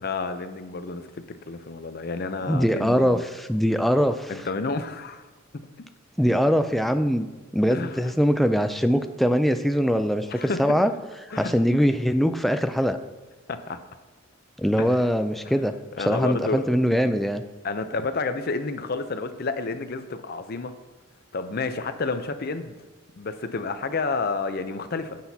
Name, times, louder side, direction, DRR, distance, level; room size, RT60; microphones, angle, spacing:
voice 1, 0.0-3.2 4.3-5.3 5.8-5.9 7.7-8.1 10.3-10.6 11.3-11.5 13.5-13.8 14.8-15.1 16.0-16.6 17.6-20.7 21.3-22.8 23.2-25.2, left 3 dB, 45° left, 9 dB, 0.6 m, -30 dB
voice 2, 2.5-4.3 6.2-7.3 7.5-10.9 11.4-13.0 14.6-15.7 16.0-17.4, equal, ahead, 8 dB, 0.3 m, -22 dB
10.5 x 7.8 x 2.8 m, 1.3 s
head